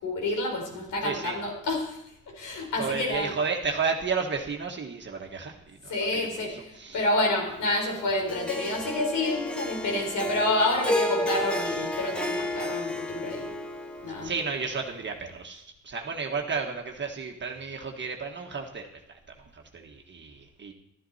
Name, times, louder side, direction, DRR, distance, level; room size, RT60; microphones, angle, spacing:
voice 1, 0.0-2.0 2.3-3.3 5.9-13.5 14.0-14.3, left 2 dB, 85° left, 1 dB, 4.4 m, -28 dB
voice 2, 1.0-1.4 2.8-5.5 5.8-5.9 6.5-7.0 14.2-18.8 19.5-20.7, right 5 dB, 40° right, 1 dB, 1.6 m, -32 dB
Harp, 8.3-14.7, left 1 dB, 5° left, 1.2 m, -32 dB
13.0 x 11.5 x 4.3 m, 0.81 s
cardioid pair, 90°, 30 cm